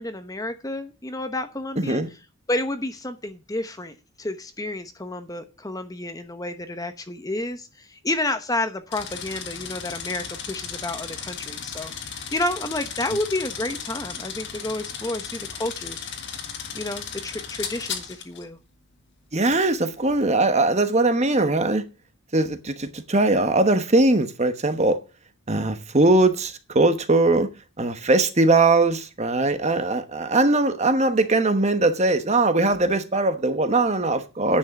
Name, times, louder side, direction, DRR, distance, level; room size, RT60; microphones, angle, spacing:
voice 1, 0.0-2.2 2.5-16.1 16.7-18.6, left 1 dB, 15° left, 0.9 m, -30 dB
voice 2, 1.8-2.1 19.3-21.9 22.3-25.0 25.5-27.5 27.8-34.6, right 2 dB, 30° right, 1.1 m, -20 dB
sound 1, 8.9-18.4 19.4-19.6, left 7 dB, 55° left, 1.7 m, -35 dB
10.0 x 6.3 x 7.1 m
head